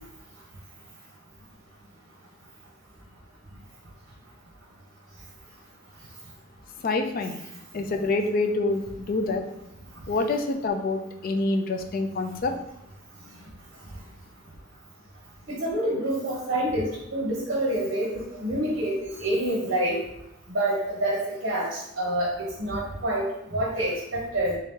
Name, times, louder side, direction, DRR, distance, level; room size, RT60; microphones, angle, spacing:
voice 1, 6.8-7.3 7.7-9.4 10.1-12.5, left 3 dB, 45° left, 5 dB, 0.4 m, -26 dB
voice 2, 15.5-18.9 19.2-20.0 20.5-24.6, right 1 dB, 60° right, -4 dB, 0.9 m, -27 dB
3.5 x 2.8 x 3.6 m, 0.80 s
head